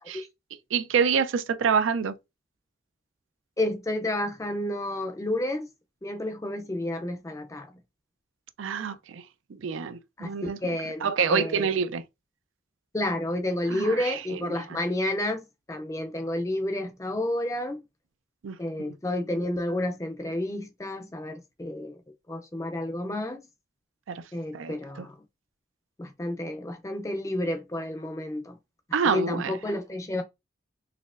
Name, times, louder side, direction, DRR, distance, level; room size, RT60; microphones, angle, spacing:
voice 1, 0.7-2.1 8.6-9.2 9.6-12.0 13.7-14.6 18.4-18.6 24.1-24.2 24.5-24.8 28.9-29.6, right 6 dB, 85° right, 0.4 m, -27 dB
voice 2, 3.6-5.7 6.0-7.8 10.2-11.7 12.9-17.8 18.6-22.0 22.3-23.4 24.3-25.2 26.0-28.6 29.1-30.2, left 1 dB, 15° left, 0.4 m, -30 dB
4.1 x 3.0 x 2.5 m
head